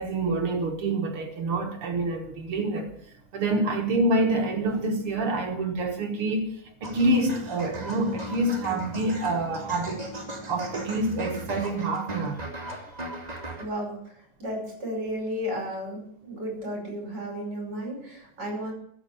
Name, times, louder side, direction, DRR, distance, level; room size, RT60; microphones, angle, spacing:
voice 1, 0.0-2.9 3.3-10.1 10.5-12.4, right 2 dB, 50° right, 2.2 m, -27 dB
sound 1, 6.8-13.6, right 1 dB, 15° right, 2.3 m, -37 dB
voice 2, 13.6-18.7, equal, 35° right, 5.8 m, -33 dB
13.0 x 7.8 x 9.9 m
omnidirectional pair, 3.4 m